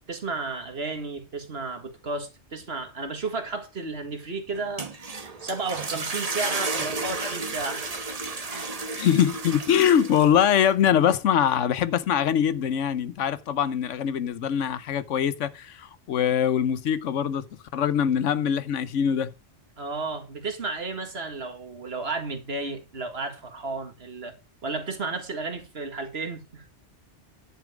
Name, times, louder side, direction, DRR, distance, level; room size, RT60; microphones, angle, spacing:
voice 1, 0.1-5.1 5.4-7.9 8.5-8.7 19.8-24.4 24.6-26.7, right 3 dB, 60° right, 2.1 m, -33 dB
sound 1, 4.6-10.6, right 3 dB, 35° right, 1.2 m, -33 dB
voice 2, 9.0-17.5 17.7-19.3, left 9 dB, 90° left, 1.1 m, -23 dB
10.5 x 7.1 x 4.9 m
omnidirectional pair, 1.2 m